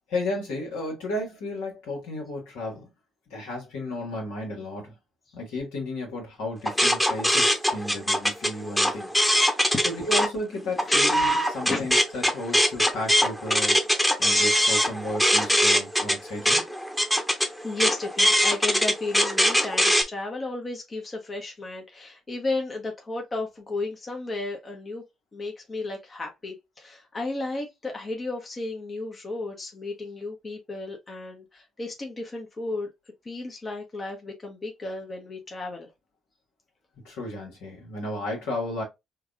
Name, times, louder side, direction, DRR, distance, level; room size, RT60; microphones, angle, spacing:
voice 1, 0.1-2.9 3.3-4.9 5.3-9.1 9.8-16.6 37.0-38.8, left 1 dB, 75° left, 1.6 m, -33 dB
sound 1, 6.7-10.3 10.7-20.0, equal, 5° left, 1.1 m, -22 dB
voice 2, 9.3-9.9 10.9-11.0 11.7-11.9 17.6-25.0 25.3-32.9 33.2-35.9, left 2 dB, 35° left, 1.0 m, -33 dB
4.5 x 2.4 x 2.5 m
hypercardioid pair, 50°, 0 cm